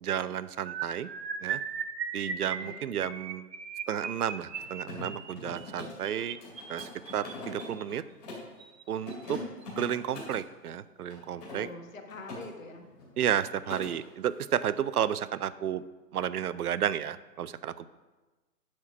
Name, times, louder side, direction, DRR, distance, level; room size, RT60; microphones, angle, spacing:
voice 1, 0.0-1.1 1.4-1.6 2.1-3.5 3.9-6.4 6.7-8.0 8.9-9.4 9.8-11.7 13.2-15.8 16.1-17.9, right 9 dB, 65° right, 15 dB, 0.6 m, -32 dB
sound 1, 0.7-7.8 8.6-8.8 9.1-9.3 9.6-9.8, right 6 dB, 85° right, 1.0 m, -38 dB
Mechanisms, 4.4-8.5 9.0-10.4 11.1-12.4 12.7-13.1 13.4-13.9, left 2 dB, 25° left, 2.8 m, -43 dB
voice 2, 11.5-12.9, left 3 dB, 55° left, 4 dB, 1.4 m, -44 dB
11.0 x 4.4 x 6.0 m, 1.2 s
hypercardioid pair, 175°, 49 cm